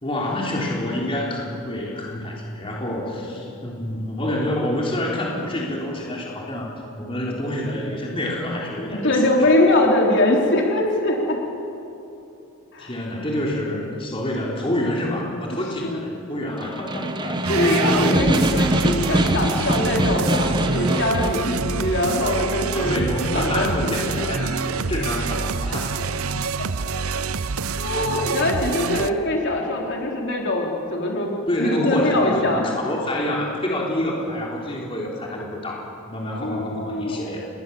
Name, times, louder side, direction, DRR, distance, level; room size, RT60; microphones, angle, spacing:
voice 1, 0.0-6.7 7.0-9.2 12.8-17.7 22.7-26.4 31.5-37.5, left 1 dB, 25° left, -3 dB, 3.7 m, -27 dB
voice 2, 8.9-11.4 12.7-12.9 15.5-16.0 17.5-23.1 23.3-24.5 27.8-31.3 31.6-32.7 36.3-37.3, left 1 dB, 55° left, -1 dB, 4.0 m, -22 dB
Snare drum, 16.5-21.5, right 1 dB, 20° right, 1.1 m, -23 dB
sound 1, 17.4-29.1, right 5 dB, 80° right, 0.8 m, -27 dB
29.5 x 21.5 x 7.2 m, 2.9 s
head